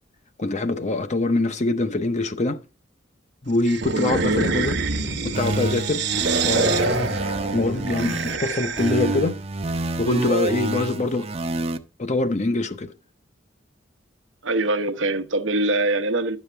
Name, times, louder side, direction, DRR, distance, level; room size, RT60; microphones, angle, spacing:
voice 1, 0.4-2.6 3.4-6.1 6.4-7.2 7.5-9.4 10.0-11.2 12.0-12.9, left 2 dB, 40° left, 0.8 m, -24 dB
sound 1, 3.7-9.1, right 3 dB, 65° right, 1.1 m, -26 dB
sound 2, 5.3-8.4 8.8-11.8, right 2 dB, 35° right, 0.6 m, -27 dB
voice 2, 14.4-16.4, right 2 dB, 85° right, 0.9 m, -23 dB
11.0 x 7.1 x 3.3 m
head